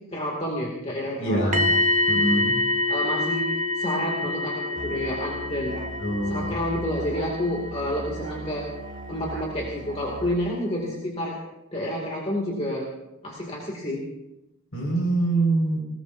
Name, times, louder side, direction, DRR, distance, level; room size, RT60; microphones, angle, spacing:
voice 1, 0.1-1.5 2.9-5.8 6.3-8.7 9.1-11.4 11.7-12.9 13.2-14.0, equal, 30° left, -2 dB, 2.4 m, -29 dB
voice 2, 1.2-1.7 2.1-2.5 6.0-6.5 14.7-15.8, right 2 dB, 65° left, -1 dB, 5.3 m, -24 dB
sound 1, 1.5-9.4 9.7-9.9, left 2 dB, 35° right, 1.0 m, -27 dB
Musical instrument, 4.7-10.5, right 2 dB, 55° right, 1.3 m, -39 dB
20.0 x 19.0 x 2.7 m, 0.94 s
head